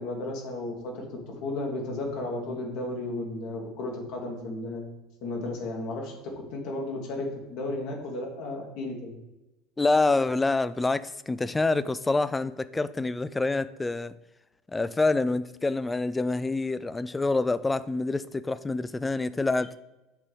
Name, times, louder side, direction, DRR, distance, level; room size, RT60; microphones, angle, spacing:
voice 1, 0.0-4.9 5.2-9.1, left 2 dB, 60° left, 1.7 m, -34 dB
voice 2, 9.8-14.1 14.7-19.7, left 3 dB, 15° left, 0.3 m, -26 dB
7.4 x 3.6 x 5.0 m
figure-of-eight pair, 70°, 0 cm